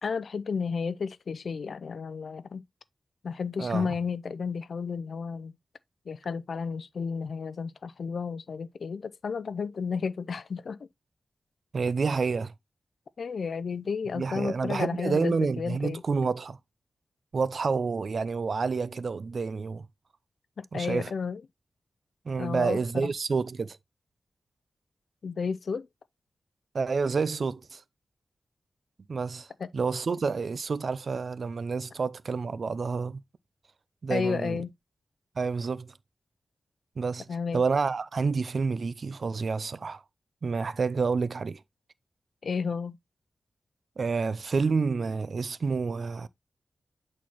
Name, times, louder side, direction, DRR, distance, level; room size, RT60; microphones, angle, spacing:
voice 1, 0.0-2.6 3.2-5.5 6.1-10.9 13.2-16.0 20.6-21.4 22.4-23.1 25.2-25.9 29.6-29.7 34.1-34.7 37.3-37.6 42.4-43.0, left 5 dB, 70° left, 0.4 m, -32 dB
voice 2, 3.6-3.9 11.7-12.5 14.1-16.6 17.3-19.9 20.7-21.1 22.3-23.8 26.7-27.8 29.1-33.2 34.0-34.6 35.4-35.9 37.0-37.3 37.5-40.0 40.4-41.6 44.0-46.3, right 4 dB, 60° right, 0.4 m, -29 dB
8.4 x 4.3 x 2.9 m
wide cardioid pair, 105°, 0 cm